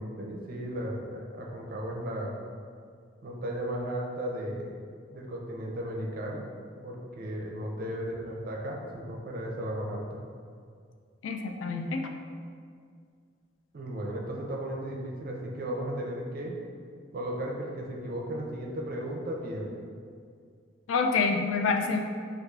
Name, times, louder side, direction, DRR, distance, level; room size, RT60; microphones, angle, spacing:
voice 1, 0.0-2.3 3.2-4.7 5.1-6.5 6.8-10.2 13.7-16.5 17.1-19.7, right 1 dB, 50° right, -1 dB, 0.5 m, -35 dB
voice 2, 11.2-12.1 20.9-22.0, left 4 dB, 90° left, 4 dB, 0.3 m, -27 dB
4.6 x 2.4 x 2.4 m, 2.2 s
head